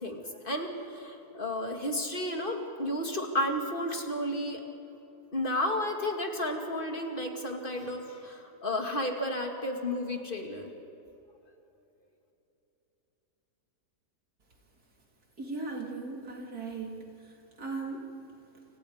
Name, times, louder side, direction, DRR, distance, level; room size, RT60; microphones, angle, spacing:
voice 1, 0.0-4.6 5.3-10.7, left 1 dB, 35° left, 2 dB, 2.4 m, -32 dB
voice 2, 15.4-17.0 17.6-18.1, right 3 dB, 70° right, 0 dB, 3.7 m, -37 dB
29.5 x 25.5 x 5.0 m, 2.9 s
omnidirectional pair, 1.7 m